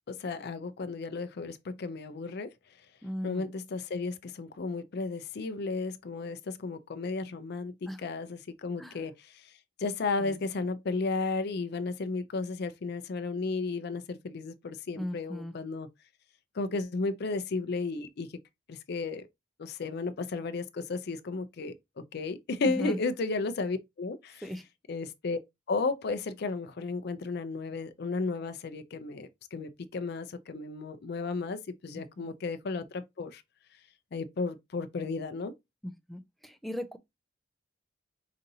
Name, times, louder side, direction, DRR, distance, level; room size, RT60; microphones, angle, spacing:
voice 1, 0.1-2.5 3.2-9.3 9.8-15.9 16.6-18.3 18.7-19.3 19.6-21.7 22.1-24.5 24.9-25.4 25.7-33.4 34.1-35.5, left 3 dB, 60° left, 0.4 m, -34 dB
voice 2, 3.0-3.4 7.9-8.0 8.8-9.0 10.2-10.4 15.0-15.5 22.8-23.0 24.4-24.6 32.0-32.3 35.8-37.0, equal, ahead, 0.4 m, -37 dB
4.9 x 2.7 x 2.7 m
head